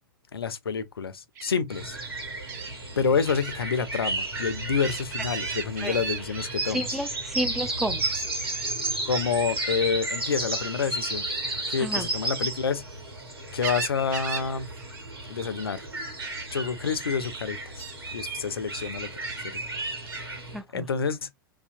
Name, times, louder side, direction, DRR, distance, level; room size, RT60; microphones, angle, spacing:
voice 1, 0.3-2.0 3.0-6.9 9.1-11.3 11.7-12.8 13.5-14.7 15.3-15.8 16.5-17.8 18.1-19.1 19.5-19.6 20.7-21.3, left 6 dB, 85° left, 0.4 m, -28 dB
Gull seagull, 1.4-1.5 2.5-2.7 3.3-3.5 3.9-6.7 8.0-8.7 9.6-9.9 11.7-13.0 13.4-14.5 14.8-15.0 15.3-15.8 16.2-16.5 17.2-17.3 17.8-18.0 18.7-19.4 20.1-20.3, right 5 dB, 50° right, 0.8 m, -37 dB
sound 1, 1.7-20.6, right 2 dB, 85° right, 1.0 m, -33 dB
voice 2, 6.7-8.0 11.8-12.1 20.5-20.9, right 1 dB, ahead, 0.3 m, -31 dB
2.7 x 2.1 x 2.5 m
figure-of-eight pair, 100°, 12 cm